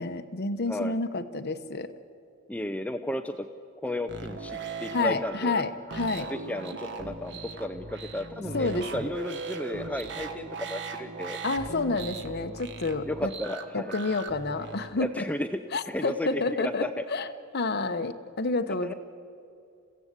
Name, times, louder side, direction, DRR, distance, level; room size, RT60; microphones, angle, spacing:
voice 1, 0.0-1.9 4.9-6.3 8.5-9.1 11.4-13.3 13.7-15.2 15.7-17.3 17.5-18.9, left 3 dB, 50° left, 9 dB, 1.0 m, -29 dB
voice 2, 2.5-3.5 3.8-5.6 6.3-11.4 13.1-14.0 15.0-15.6 15.9-16.9 18.8-18.9, left 1 dB, 5° left, 7 dB, 0.6 m, -33 dB
sound 1, 4.1-14.9, right 4 dB, 60° right, 1.4 m, -39 dB
29.0 x 15.5 x 8.2 m, 2.5 s
head